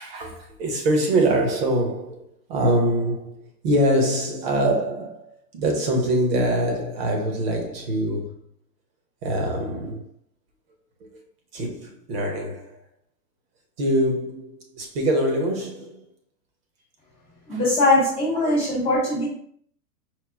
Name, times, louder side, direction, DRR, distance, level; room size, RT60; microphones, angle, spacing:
voice 1, 0.0-8.4 9.2-10.1 11.0-11.2 11.5-12.8 13.8-16.0 17.5-17.6 18.7-18.8, right 1 dB, 40° right, 0.9 m, -24 dB
voice 2, 17.5-19.2, left 2 dB, 5° left, 0.4 m, -21 dB
4.7 x 2.0 x 3.5 m
hypercardioid pair, 155°, 47 cm